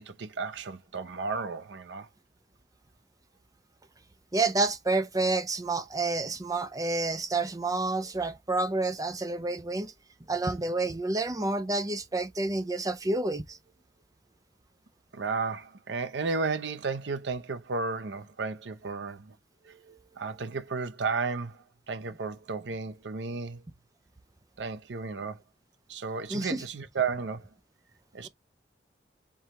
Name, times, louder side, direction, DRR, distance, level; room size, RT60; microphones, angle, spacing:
voice 1, 0.0-2.1 15.1-19.4 20.2-23.6 24.6-25.4 25.9-27.5 28.1-28.3, right 4 dB, 75° right, 0.6 m, -33 dB
voice 2, 4.3-9.9 10.3-13.6 19.7-20.0 26.3-26.6, right 2 dB, 20° right, 0.6 m, -29 dB
4.7 x 3.4 x 2.9 m
head